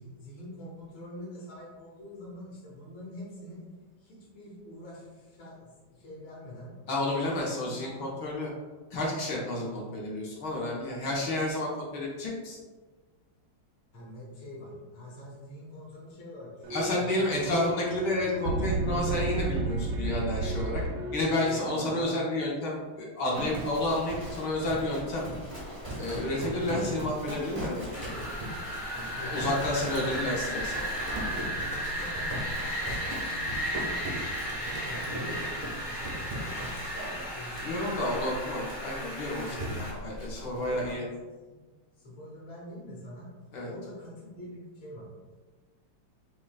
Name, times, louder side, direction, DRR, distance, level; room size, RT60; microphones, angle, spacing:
voice 1, 0.0-3.6 4.0-6.7 7.2-8.2 9.7-9.8 13.9-17.6 21.8-22.0 28.9-29.9 31.5-34.1 34.5-36.9 37.3-37.8 39.4-39.9 40.4-41.1 41.5-41.6 42.0-43.3 43.6-45.1, left 1 dB, 90° left, -6 dB, 2.0 m, -45 dB
voice 2, 6.9-8.5 8.9-12.6 16.7-20.8 21.1-25.2 25.9-28.2 28.5-28.6 29.3-30.9 37.6-41.0 43.5-43.7, left 1 dB, 65° left, -4 dB, 1.1 m, -31 dB
sound 1, 16.6-22.0, right 2 dB, 90° right, 0.9 m, -32 dB
Livestock farm animals working animals, 23.3-40.9, equal, 15° right, 0.4 m, -39 dB
Wind, 27.9-39.9, equal, 45° left, 0.4 m, -35 dB
6.2 x 2.1 x 2.3 m, 1.3 s
omnidirectional pair, 2.3 m